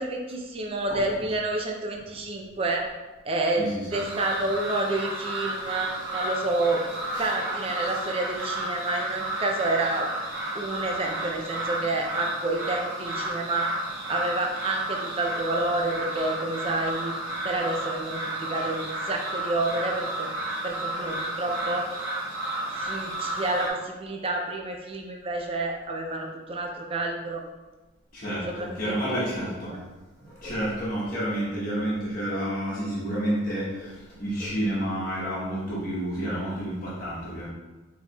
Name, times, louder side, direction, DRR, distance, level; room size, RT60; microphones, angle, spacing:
voice 1, 0.0-2.9 3.2-3.7 3.9-6.8 7.2-10.1 10.5-13.7 14.1-17.1 17.4-20.3 20.6-22.0 22.7-27.4 28.5-29.2 29.7-29.8, right 2 dB, 25° right, 1 dB, 0.4 m, -29 dB
voice 2, 3.6-3.9 28.1-29.8 30.2-37.5, equal, 40° left, -8 dB, 1.1 m, -30 dB
sound 1, 3.9-23.7, right 1 dB, 60° right, 0.9 m, -32 dB
4.5 x 4.0 x 2.3 m, 1.2 s
head